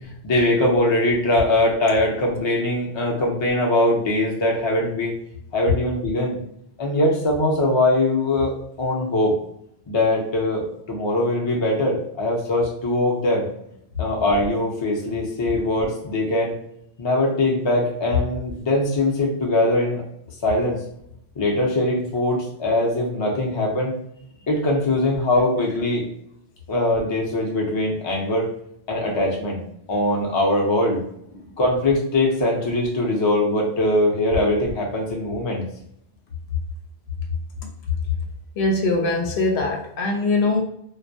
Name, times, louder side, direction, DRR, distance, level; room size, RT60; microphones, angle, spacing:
voice 1, 0.2-5.1 5.5-6.4 6.8-8.5 8.8-9.3 9.9-13.4 14.0-16.5 17.0-20.0 20.4-20.8 21.4-23.9 24.5-26.0 26.7-28.5 28.9-29.6 29.9-31.0 31.6-35.6, left 1 dB, 35° left, -2 dB, 0.5 m, -21 dB
voice 2, 38.6-40.6, left 2 dB, 75° left, 1 dB, 0.8 m, -22 dB
2.2 x 2.1 x 2.6 m, 0.72 s
omnidirectional pair, 1.1 m